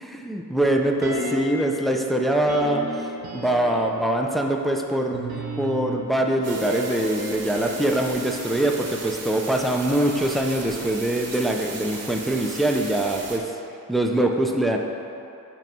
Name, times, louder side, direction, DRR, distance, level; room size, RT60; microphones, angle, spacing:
voice 1, 0.1-2.9 3.3-13.4 13.9-14.8, right 1 dB, ahead, 1 dB, 0.4 m, -23 dB
sound 1, 1.0-1.8 2.5-4.1 5.1-9.3 9.6-9.7, right 1 dB, 80° right, 0.9 m, -34 dB
sound 2, 6.4-13.4, right 3 dB, 45° right, 0.9 m, -37 dB
8.9 x 3.1 x 4.5 m, 2.7 s
wide cardioid pair, 115°, 36 cm